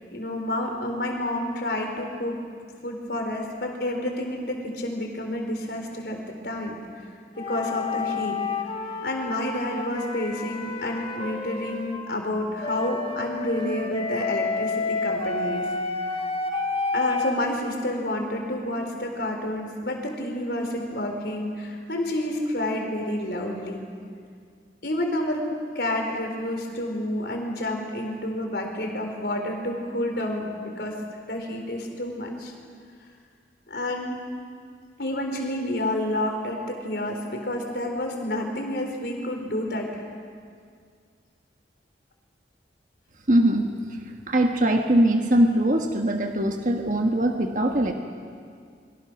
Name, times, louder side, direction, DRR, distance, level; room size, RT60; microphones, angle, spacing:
voice 1, 0.1-2.4 2.8-6.8 7.4-8.4 9.0-15.7 16.9-23.9 24.8-25.5 25.7-31.0 31.3-32.5 33.7-34.2 35.0-39.9, left 1 dB, 65° left, 2 dB, 4.2 m, -29 dB
sound 1, 7.4-12.0 12.6-17.4, left 4 dB, 30° left, 1.9 m, -30 dB
voice 2, 43.3-43.7 44.3-47.9, right 1 dB, 45° right, 3 dB, 1.4 m, -21 dB
28.0 x 23.0 x 6.4 m, 2.2 s
head